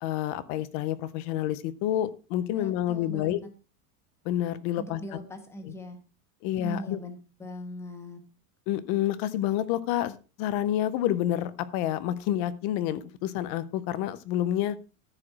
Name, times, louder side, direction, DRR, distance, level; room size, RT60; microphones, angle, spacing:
voice 1, 0.0-3.4 4.2-5.0 5.7-5.8 6.4-7.0 8.7-14.8, left 12 dB, 25° left, 16 dB, 0.4 m, -29 dB
voice 2, 2.5-3.3 4.8-6.0 6.6-8.2, equal, 5° left, 6 dB, 1.3 m, -40 dB
14.0 x 4.9 x 5.9 m, 0.34 s
supercardioid pair, 180°, 45 cm